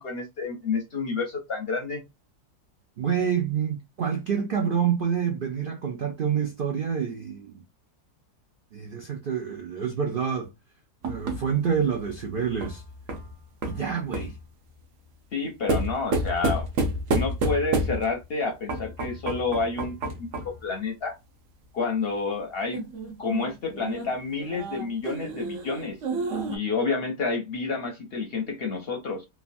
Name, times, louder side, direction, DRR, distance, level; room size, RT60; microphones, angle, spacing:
voice 1, 0.0-2.0 15.3-16.7 17.1-20.3 20.6-21.1 21.7-22.9 23.2-26.0 26.4-29.3, left 4 dB, 55° left, 0.7 m, -29 dB
voice 2, 3.0-7.6 8.7-10.5 11.0-12.8 13.6-14.4, right 7 dB, 80° right, 0.4 m, -27 dB
sound 1, 11.0-14.4 15.7-18.2 18.7-20.6 22.7-26.6, right 2 dB, 60° right, 0.9 m, -30 dB
3.1 x 2.2 x 2.5 m
omnidirectional pair, 1.6 m